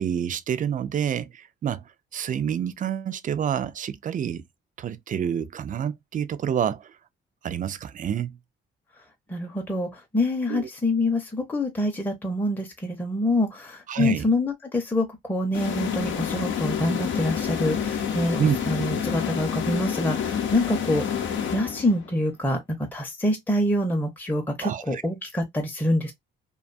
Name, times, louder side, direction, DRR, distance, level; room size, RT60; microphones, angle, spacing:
voice 1, 0.0-1.8 2.1-4.4 4.8-6.9 7.4-8.4 10.5-10.7 13.9-14.3 18.4-18.6 18.9-19.0 24.6-25.0, right 9 dB, 40° right, 0.4 m, -28 dB
voice 2, 9.3-21.2 21.5-22.6 22.9-26.1, left 1 dB, 10° left, 0.7 m, -26 dB
sound 1, 15.5-22.2, left 8 dB, 70° left, 0.6 m, -28 dB
2.5 x 2.3 x 2.5 m
cardioid pair, 90°, 20 cm